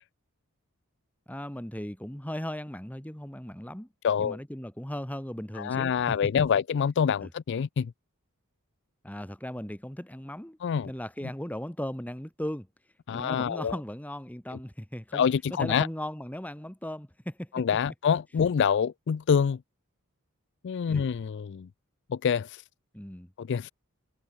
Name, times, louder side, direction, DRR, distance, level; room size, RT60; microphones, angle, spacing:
voice 1, 1.3-3.9 4.2-5.9 7.2-7.3 9.0-10.6 10.9-12.7 13.1-15.3 15.5-17.6 20.9-21.1 22.9-23.3, equal, 5° left, 2.0 m, -37 dB
voice 2, 4.0-4.4 5.6-7.9 10.6-10.9 13.1-13.7 15.1-15.9 17.5-19.6 20.6-21.7 22.1-22.6 23.4-23.7, left 7 dB, 55° left, 0.4 m, -26 dB
head